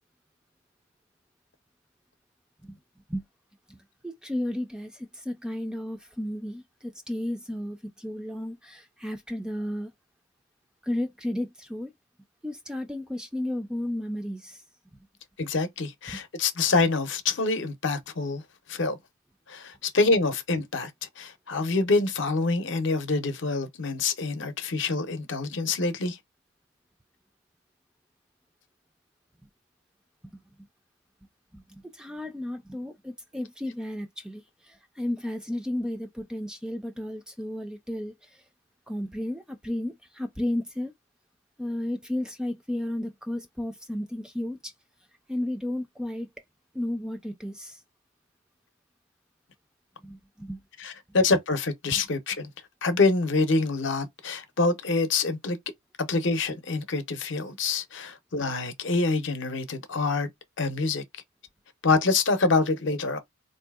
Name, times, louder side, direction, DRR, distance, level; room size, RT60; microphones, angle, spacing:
voice 1, 4.0-9.9 10.8-11.9 12.4-14.6 16.1-16.2 30.3-30.4 31.5-38.4 38.9-40.9 41.6-44.7 45.3-46.3 46.7-47.8 50.0-50.6 51.1-51.2 51.9-52.0, left 1 dB, 5° right, 0.3 m, -33 dB
voice 2, 15.4-18.4 18.7-19.0 19.5-20.9 21.2-26.2 50.8-52.5 52.8-55.6 56.0-60.3 60.6-61.0 61.8-63.2, left 3 dB, 60° left, 0.7 m, -26 dB
4.0 x 2.6 x 2.2 m
head